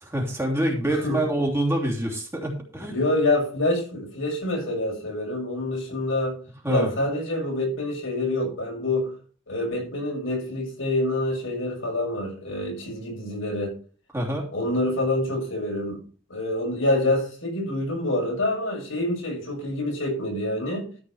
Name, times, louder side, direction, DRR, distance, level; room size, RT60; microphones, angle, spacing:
voice 1, 0.0-3.0 6.6-6.9 14.1-14.5, right 1 dB, 15° right, 3.1 m, -26 dB
voice 2, 2.9-6.4 6.7-9.1 9.5-13.7 14.5-16.0 16.3-20.9, left 1 dB, 80° left, 6.5 m, -26 dB
13.5 x 5.4 x 6.4 m
head